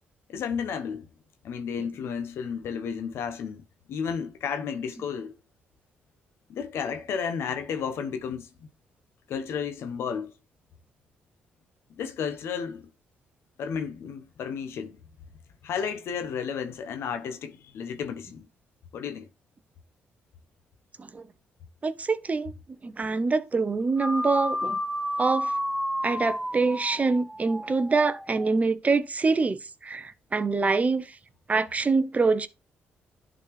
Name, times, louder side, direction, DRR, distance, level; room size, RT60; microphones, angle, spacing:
voice 1, 0.3-1.1 1.4-5.3 6.5-8.5 9.3-10.3 12.0-12.9 13.6-15.0 15.6-18.5 18.9-19.3, left 7 dB, 75° left, 1.1 m, -32 dB
voice 2, 21.8-22.5 22.8-24.8 25.2-25.5 26.0-31.1 31.5-32.5, right 4 dB, 35° right, 0.7 m, -25 dB
sound 1, 24.0-28.5, equal, ahead, 0.6 m, -31 dB
11.0 x 4.1 x 3.3 m
supercardioid pair, 60°, 4 cm